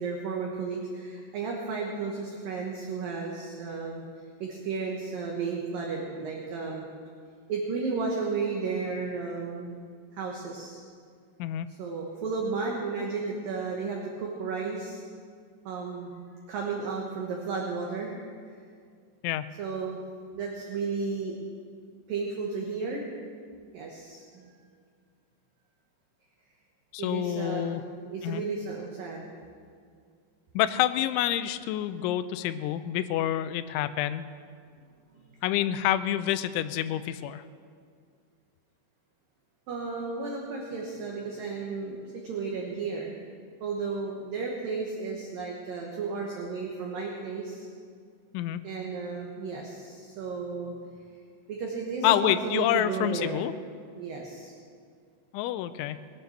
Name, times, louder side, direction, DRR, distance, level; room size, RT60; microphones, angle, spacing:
voice 1, 0.0-4.0 4.4-6.8 7.5-9.8 10.1-10.8 11.7-15.0 15.6-16.1 16.5-18.2 19.6-20.0 20.4-21.4 22.1-23.0 23.7-24.5 27.0-27.8 28.1-29.3 35.1-35.2 39.7-43.1 43.6-47.7 48.6-50.7 51.5-53.4 53.9-54.5, right 4 dB, 65° right, -1 dB, 2.5 m, -33 dB
voice 2, 26.9-27.8 28.2-28.4 30.5-34.3 35.4-37.4 48.3-48.6 52.0-53.5 55.3-56.0, left 12 dB, 85° left, 12 dB, 3.0 m, -28 dB
21.0 x 9.5 x 6.5 m, 2.1 s
omnidirectional pair, 5.4 m